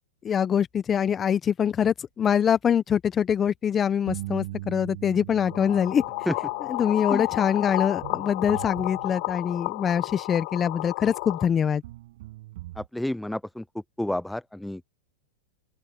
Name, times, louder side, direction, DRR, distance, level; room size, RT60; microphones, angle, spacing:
voice 1, 0.2-6.0 6.7-11.8, left 8 dB, 20° left, 1.0 m, -24 dB
sound 1, 4.1-10.0 11.2-11.3 11.8-12.9, right 17 dB, 60° right, 6.7 m, -41 dB
sound 2, 5.4-11.5, left 29 dB, 55° left, 6.6 m, -31 dB
voice 2, 12.8-13.6 14.0-14.9, left 1 dB, 5° left, 0.4 m, -30 dB
open air
hypercardioid pair, 130°, 0 cm